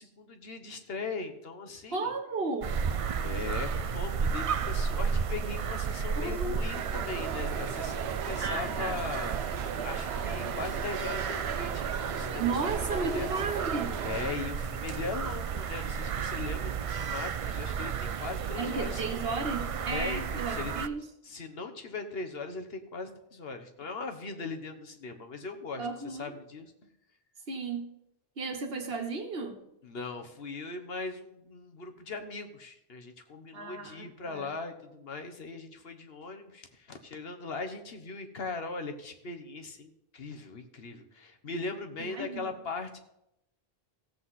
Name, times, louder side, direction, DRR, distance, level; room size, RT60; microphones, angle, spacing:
voice 1, 0.0-2.1 3.2-9.4 9.8-12.6 12.9-13.3 14.0-19.2 19.9-20.7 21.2-26.7 29.8-43.0, left 3 dB, 70° left, 6 dB, 1.4 m, -39 dB
voice 2, 1.9-2.8 6.2-6.6 8.4-9.0 12.4-14.0 18.6-21.0 25.8-26.3 27.5-27.8 28.4-29.6 33.5-34.5 42.0-42.4, right 3 dB, 70° right, 4 dB, 1.6 m, -34 dB
sound 1, 2.6-20.9, right 6 dB, 50° right, 0.4 m, -33 dB
sound 2, 6.7-14.3, right 7 dB, 90° right, 1.0 m, -37 dB
16.0 x 7.7 x 4.2 m, 0.83 s
omnidirectional pair, 1.1 m